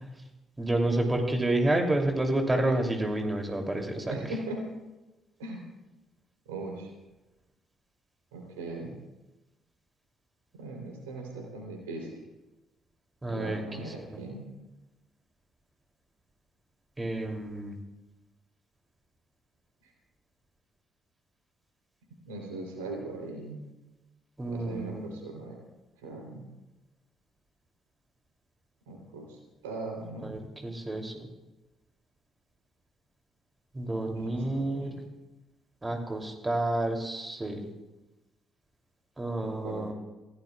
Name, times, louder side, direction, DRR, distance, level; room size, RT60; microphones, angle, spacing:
voice 1, 0.6-4.3 13.2-13.6 17.0-17.8 24.4-25.1 30.2-31.1 33.7-35.0 35.8-37.6 39.2-39.9, right 1 dB, 20° right, 2 dB, 2.9 m, -29 dB
voice 2, 4.1-4.7 5.4-5.6 6.5-6.9 8.3-8.9 10.6-12.2 13.3-14.5 19.8-19.9 22.3-23.6 24.5-25.6 26.0-26.5 28.9-29.4 29.6-30.4 34.2-35.0 39.4-39.9, right 2 dB, 75° right, 1 dB, 3.3 m, -39 dB
27.5 x 16.5 x 2.4 m, 1.1 s
figure-of-eight pair, 45°, 0 cm